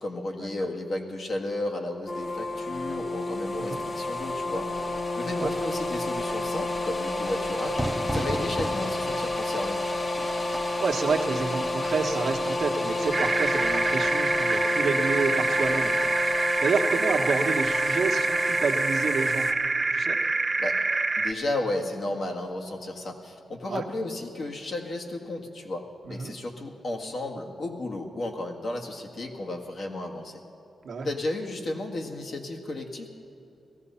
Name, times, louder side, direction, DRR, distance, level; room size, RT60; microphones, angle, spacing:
voice 1, 0.0-4.9 5.2-9.8 20.6-20.8 21.2-30.4 31.0-33.1, left 2 dB, 65° left, 0 dB, 1.8 m, -33 dB
sound 1, 2.1-19.5, left 2 dB, 30° left, 1.1 m, -30 dB
Fire / Fireworks, 7.8-13.3, right 1 dB, 5° right, 0.8 m, -36 dB
voice 2, 10.8-15.9 16.6-19.5 19.9-20.2 23.7-23.8 26.0-26.3 30.8-31.1, right 4 dB, 75° right, 3 dB, 1.1 m, -29 dB
sound 2, 13.1-21.3, right 3 dB, 30° right, 0.6 m, -26 dB
17.5 x 14.0 x 5.6 m, 2.9 s
cardioid pair, 70°, 0 cm